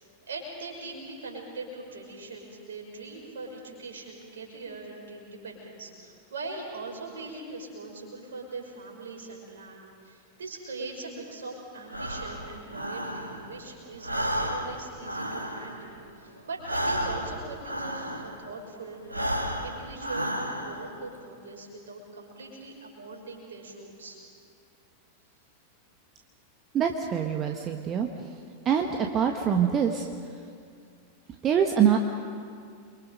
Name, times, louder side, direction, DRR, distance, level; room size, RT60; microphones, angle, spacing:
voice 1, 0.0-19.0 19.6-24.2, right 3 dB, 65° right, 0 dB, 5.6 m, -41 dB
Breathing, 11.9-13.6 13.9-18.5 19.0-20.9, equal, 85° right, 1.9 m, -32 dB
voice 2, 26.7-28.1 28.6-30.1 31.4-32.0, right 8 dB, 30° right, 3 dB, 1.4 m, -24 dB
29.0 x 23.5 x 5.4 m, 2.3 s
figure-of-eight pair, 90°, 0 cm